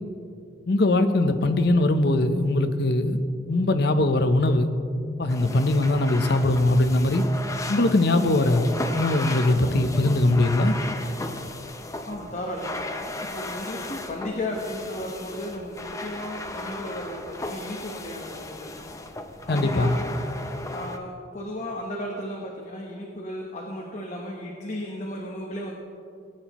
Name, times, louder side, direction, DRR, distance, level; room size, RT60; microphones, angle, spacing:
voice 1, 0.7-3.2 3.5-4.7 5.2-7.2 7.7-10.7 19.5-20.0, left 2 dB, 60° left, 8 dB, 0.7 m, -21 dB
sound 1, 5.3-21.0, left 2 dB, 15° left, 0.6 m, -35 dB
voice 2, 12.1-18.7 19.5-20.4 20.7-25.7, left 1 dB, 40° left, -1 dB, 1.0 m, -34 dB
18.0 x 9.2 x 3.0 m, 2.5 s
head